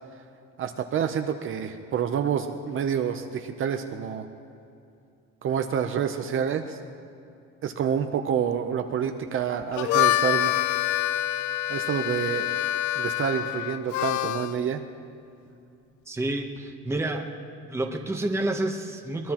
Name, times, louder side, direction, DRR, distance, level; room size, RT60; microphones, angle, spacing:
voice 1, 0.6-4.3 5.4-6.8 7.6-10.5 11.7-12.5 13.0-14.8, right 8 dB, 45° right, 6 dB, 0.7 m, -28 dB
Harmonica, 9.6-14.6, left 14 dB, 75° left, 0.5 m, -26 dB
voice 2, 16.1-17.3 17.7-19.3, right 2 dB, 10° right, 3 dB, 0.9 m, -29 dB
23.0 x 20.5 x 3.0 m, 2.6 s
cardioid pair, 175°, 29 cm